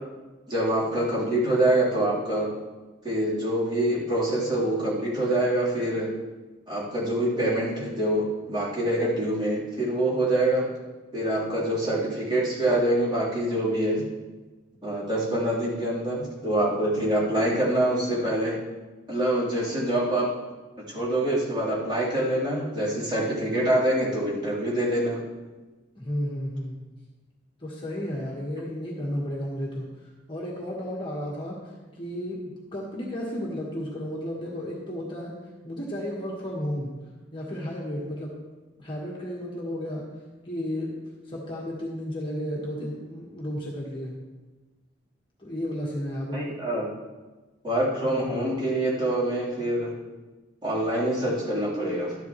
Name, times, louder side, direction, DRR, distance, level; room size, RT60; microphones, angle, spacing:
voice 1, 0.5-2.5 3.0-6.1 6.7-10.7 11.1-14.0 14.8-18.6 19.1-20.3 20.9-25.2 46.3-46.9 47.6-49.9 50.6-52.2, right 1 dB, 25° right, -8 dB, 3.7 m, -25 dB
voice 2, 25.9-26.8 27.6-29.9 30.3-31.6 31.9-35.3 35.6-36.9 37.3-38.3 38.8-40.1 40.4-40.9 41.3-44.1 45.4-46.4, equal, 25° left, -4 dB, 1.6 m, -33 dB
13.0 x 11.0 x 3.2 m, 1.2 s
head